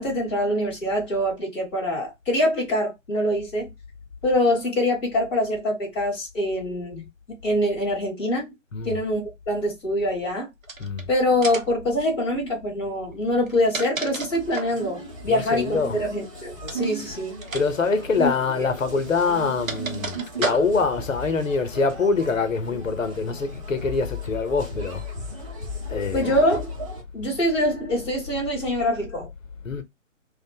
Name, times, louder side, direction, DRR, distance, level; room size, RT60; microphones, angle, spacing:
voice 1, 0.0-3.7 4.2-7.0 7.4-8.5 8.8-10.5 11.1-17.4 18.2-18.3 18.5-18.7 26.1-26.7 27.1-29.3, left 1 dB, 10° left, 0.7 m, -24 dB
sound 1, 10.6-11.0 11.4-11.8 13.3-14.8 16.6-16.9 17.4-17.7 17.9-18.0 19.0-21.0, right 4 dB, 85° right, 0.8 m, -32 dB
sound 2, 14.3-27.0, right 1 dB, 25° right, 0.7 m, -37 dB
voice 2, 15.3-16.0 17.5-25.0 25.9-26.4 29.6-29.8, left 4 dB, 80° left, 0.7 m, -24 dB
2.4 x 2.1 x 2.5 m
figure-of-eight pair, 135°, 39 cm